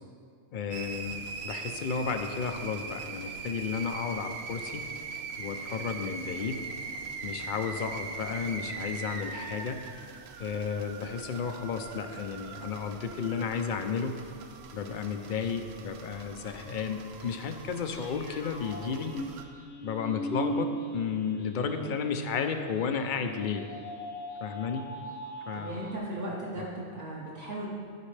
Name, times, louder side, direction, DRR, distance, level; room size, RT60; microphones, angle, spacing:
voice 1, 0.5-4.8 5.4-6.6 7.2-9.8 10.4-14.1 14.7-19.2 19.8-23.6 24.4-24.9 25.5-25.8, left 6 dB, 55° left, 6 dB, 0.6 m, -33 dB
sound 1, 0.7-19.4, right 5 dB, 70° right, 0.8 m, -41 dB
sound 2, 17.9-26.0, equal, 80° left, 1.3 m, -39 dB
voice 2, 21.7-22.0 25.5-27.7, right 1 dB, 50° right, -7 dB, 1.2 m, -37 dB
12.0 x 5.2 x 3.3 m, 2.2 s
omnidirectional pair, 1.2 m